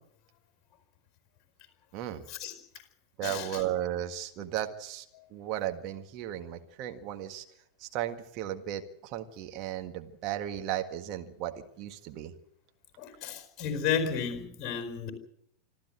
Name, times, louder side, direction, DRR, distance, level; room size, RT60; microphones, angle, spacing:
voice 1, 1.9-2.2 3.2-5.1 5.3-7.5 7.8-12.3, right 12 dB, 40° right, 6 dB, 1.7 m, -35 dB
voice 2, 13.0-15.1, left 7 dB, 35° left, 7 dB, 4.7 m, -32 dB
26.0 x 13.5 x 7.9 m, 0.74 s
figure-of-eight pair, 90°, 0 cm